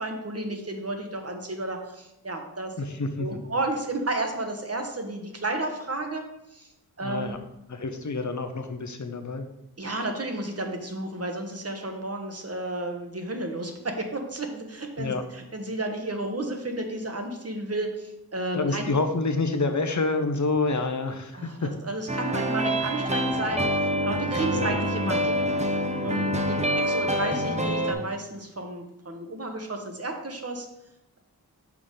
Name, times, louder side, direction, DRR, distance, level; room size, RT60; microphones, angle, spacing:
voice 1, 0.0-2.7 3.2-6.2 6.5-6.7 7.0-7.4 9.8-18.9 21.3-25.5 26.0-30.7, right 2 dB, 40° right, 4 dB, 1.2 m, -32 dB
voice 2, 2.8-3.3 7.0-7.4 7.7-9.5 15.0-15.2 18.5-21.7 24.5-24.7 26.0-26.4, left 3 dB, 50° left, 7 dB, 0.9 m, -28 dB
sound 1, 22.1-27.9, equal, 20° right, 0.8 m, -26 dB
5.9 x 4.9 x 4.0 m, 0.86 s
cardioid pair, 40°, 38 cm